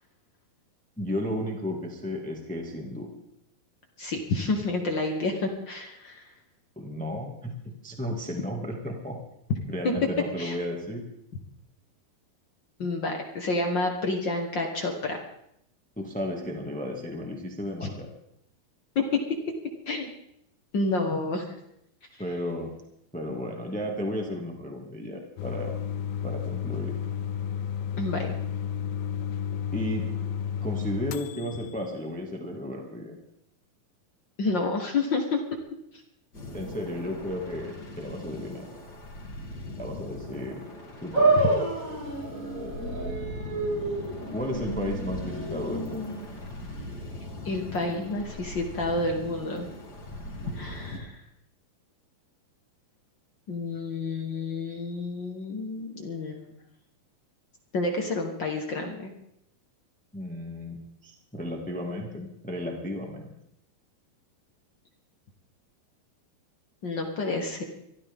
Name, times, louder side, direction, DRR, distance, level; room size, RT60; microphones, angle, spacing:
voice 1, 1.0-3.1 6.7-7.5 7.8-9.2 9.7-11.0 16.0-18.1 22.2-22.7 23.1-25.7 26.2-27.0 29.7-30.1 30.6-33.2 36.5-38.7 39.8-40.6 41.0-41.4 44.3-46.1 60.1-63.3, left 1 dB, 10° left, 1 dB, 0.5 m, -34 dB
voice 2, 4.0-6.3 10.4-10.6 12.8-15.2 17.8-17.9 18.9-19.1 19.9-20.1 20.7-21.6 28.0-28.3 34.4-35.4 47.4-49.7 50.5-51.2 53.5-56.6 57.7-59.1 66.8-67.6, left 2 dB, 65° left, 2 dB, 1.1 m, -29 dB
sound 1, 25.4-31.9, left 8 dB, 80° left, 2.6 m, -32 dB
sound 2, 36.3-51.0, left 1 dB, 30° left, 2.9 m, -40 dB
sound 3, 41.1-47.6, right 2 dB, 25° right, 2.5 m, -29 dB
23.5 x 13.5 x 3.6 m, 0.76 s
omnidirectional pair, 4.2 m